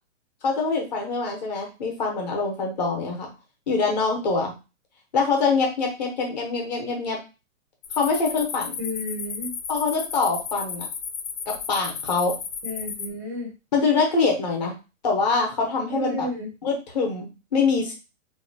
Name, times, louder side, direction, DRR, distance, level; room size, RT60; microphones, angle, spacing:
voice 1, 0.4-3.3 3.7-4.5 5.1-7.2 7.9-8.7 9.7-10.8 11.5-12.3 13.7-14.7 15.0-16.3 16.6-17.9, left 4 dB, 30° left, 0 dB, 0.9 m, -24 dB
sound 1, 7.8-13.1, left 6 dB, 70° left, 0.7 m, -34 dB
voice 2, 8.8-9.5 12.6-13.5 15.9-16.5, left 1 dB, 15° right, -1 dB, 0.6 m, -31 dB
2.8 x 2.2 x 2.7 m, 0.29 s
hypercardioid pair, 155°, 41 cm